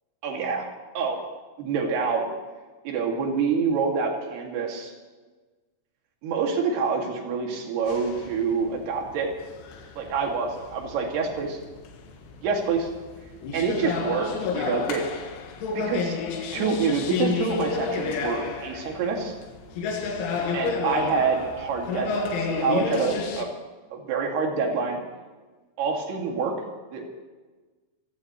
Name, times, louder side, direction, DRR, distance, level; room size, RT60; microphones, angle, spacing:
voice 1, 0.2-0.7 1.0-1.2 1.6-2.3 2.8-4.9 6.2-9.3 10.0-11.6 12.4-12.9 13.5-15.0 15.7-16.2 16.5-19.3 20.5-23.5 23.9-25.0 25.8-26.5 26.9-27.1, right 5 dB, 65° right, 1 dB, 4.1 m, -26 dB
sound 1, 7.9-23.4, left 5 dB, 90° left, 4.1 m, -31 dB
27.5 x 15.5 x 3.1 m, 1.3 s
omnidirectional pair, 5.3 m